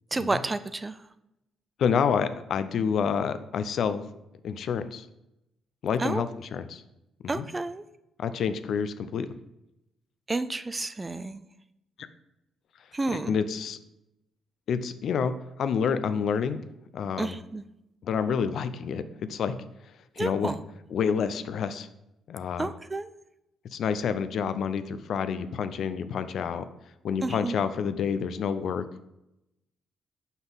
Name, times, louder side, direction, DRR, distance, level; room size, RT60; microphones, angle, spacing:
voice 1, 0.1-0.9 6.0-6.2 7.3-7.8 10.3-11.4 12.9-13.3 17.2-17.6 20.2-20.6 22.6-23.1 27.2-27.5, right 2 dB, 20° right, 13 dB, 0.4 m, -30 dB
voice 2, 1.8-4.0 4.4-5.1 5.8-6.8 7.2-7.5 8.2-9.3 12.0-12.1 13.1-13.8 14.7-15.3 15.6-16.6 16.9-17.4 18.0-19.0 19.3-19.6 20.2-20.6 20.9-21.9 22.3-22.7 23.7-26.6 27.0-28.8, left 6 dB, 65° left, 12 dB, 0.5 m, -28 dB
6.0 x 5.4 x 4.0 m, 0.87 s
cardioid pair, 90°, 0 cm